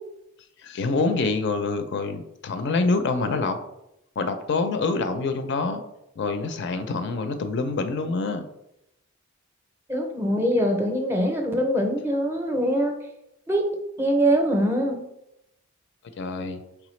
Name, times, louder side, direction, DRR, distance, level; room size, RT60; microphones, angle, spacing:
voice 1, 0.6-3.6 4.2-5.8 6.2-8.5 16.2-16.6, left 3 dB, 50° left, 8 dB, 0.4 m, -26 dB
voice 2, 9.9-12.9 13.5-13.7 14.0-15.0, equal, 10° right, 2 dB, 0.5 m, -23 dB
4.8 x 3.3 x 3.1 m, 0.85 s
head